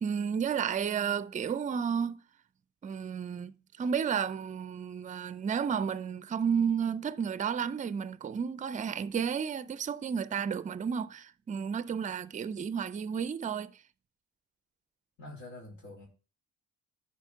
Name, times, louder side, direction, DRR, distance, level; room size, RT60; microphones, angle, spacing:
voice 1, 0.0-2.2 2.8-13.8, right 7 dB, 25° right, 0.4 m, -32 dB
voice 2, 15.2-16.1, left 2 dB, 75° left, 2.9 m, -46 dB
10.5 x 4.3 x 4.5 m
cardioid pair, 90°, 30 cm